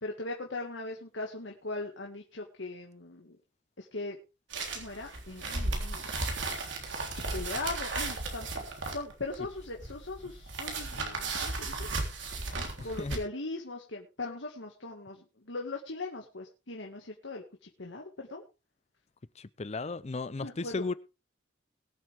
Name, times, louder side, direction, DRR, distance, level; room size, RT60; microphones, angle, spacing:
voice 1, 0.0-3.4 3.8-4.2 4.7-6.1 7.1-8.5 8.9-11.9 12.5-18.4 20.4-21.0, left 2 dB, 75° left, 2.0 m, -39 dB
sound 1, 4.5-13.2, right 3 dB, 75° right, 3.5 m, -35 dB
voice 2, 19.4-20.9, left 3 dB, 35° left, 0.5 m, -35 dB
21.5 x 7.8 x 3.5 m
head